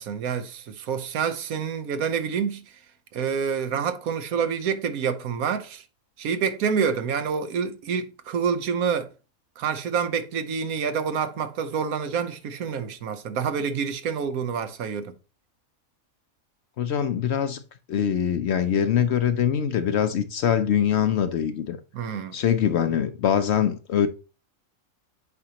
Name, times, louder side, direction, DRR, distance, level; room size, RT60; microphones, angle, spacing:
voice 1, 0.0-2.6 3.1-5.8 6.2-9.1 9.6-15.1 21.9-22.4, right 6 dB, 85° right, 1.3 m, -27 dB
voice 2, 16.8-17.6 17.9-21.8 22.3-24.1, left 9 dB, 65° left, 0.7 m, -23 dB
8.1 x 5.1 x 2.8 m
omnidirectional pair, 1.5 m